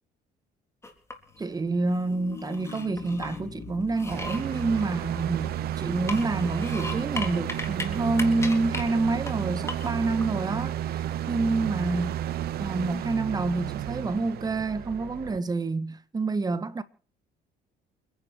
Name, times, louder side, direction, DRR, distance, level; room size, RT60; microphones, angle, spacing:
sound 1, 0.8-1.5 1.9-3.4 3.9-5.5 6.0-7.9 8.1-8.8 9.3-9.4 9.7-10.2, left 2 dB, 15° left, 3.9 m, -37 dB
sound 2, 1.2-5.8, left 7 dB, 50° left, 3.4 m, -44 dB
voice 1, 1.4-12.2 12.6-16.8, right 3 dB, 20° right, 1.6 m, -28 dB
sound 3, 4.1-15.4, right 11 dB, 65° right, 1.1 m, -32 dB
29.0 x 10.5 x 4.6 m
cardioid pair, 110°, 17 cm